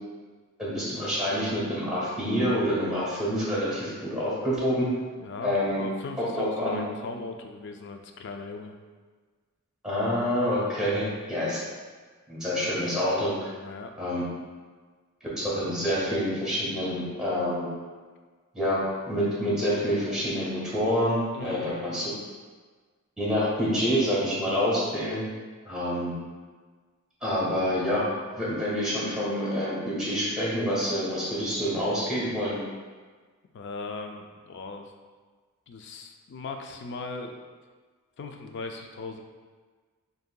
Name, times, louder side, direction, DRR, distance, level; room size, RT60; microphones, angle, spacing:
voice 1, 0.6-4.9 5.4-5.8 6.2-6.8 9.8-11.6 12.3-13.5 14.0-14.2 15.2-17.7 18.5-22.1 23.2-25.2 25.6-26.1 27.2-28.0 28.4-32.6, equal, ahead, -8 dB, 1.4 m, -27 dB
voice 2, 5.2-8.8 13.6-13.9 21.3-21.7 33.5-34.9 35.7-37.4 38.2-39.2, left 3 dB, 55° left, 4 dB, 0.4 m, -38 dB
6.4 x 2.7 x 2.2 m, 1.5 s
head